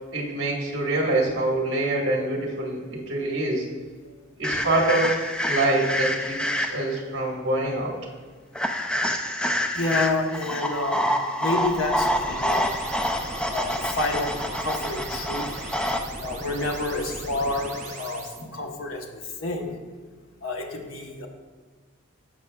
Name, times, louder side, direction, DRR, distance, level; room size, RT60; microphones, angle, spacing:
voice 1, 0.1-3.6 4.4-5.2 5.4-7.9, right 2 dB, 60° right, -2 dB, 1.5 m, -25 dB
sound 1, 4.4-7.0 8.6-16.0, equal, 5° left, 0.3 m, -27 dB
voice 2, 9.7-11.1 11.4-12.7 13.5-15.5 16.2-19.1 19.4-19.8 20.4-21.3, left 2 dB, 90° left, 2 dB, 1.0 m, -29 dB
sound 2, 11.6-18.4, right 2 dB, 40° right, 0.9 m, -38 dB
13.5 x 5.9 x 2.3 m, 1.5 s
head